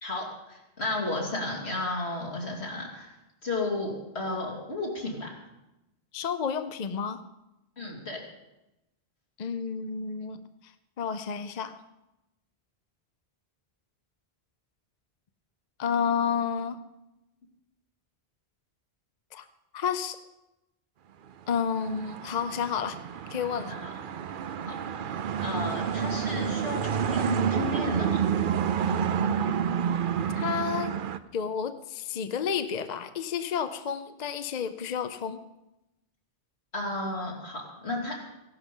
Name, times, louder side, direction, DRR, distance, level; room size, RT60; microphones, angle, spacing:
voice 1, 0.0-3.1 3.4-5.3 7.8-8.2 23.7-23.9 24.6-24.8 25.4-28.3 36.7-38.2, left 2 dB, 85° left, -1 dB, 3.2 m, -33 dB
voice 2, 6.1-7.2 9.4-10.4 11.0-11.8 15.8-16.8 19.3-19.5 19.7-20.2 21.5-23.0 23.3-23.8 30.3-30.9 31.3-35.4, left 7 dB, 50° left, 10 dB, 0.7 m, -30 dB
sound 1, 21.5-31.2, right 7 dB, 60° right, 0.7 m, -29 dB
15.5 x 11.5 x 5.4 m, 0.95 s
omnidirectional pair, 1.1 m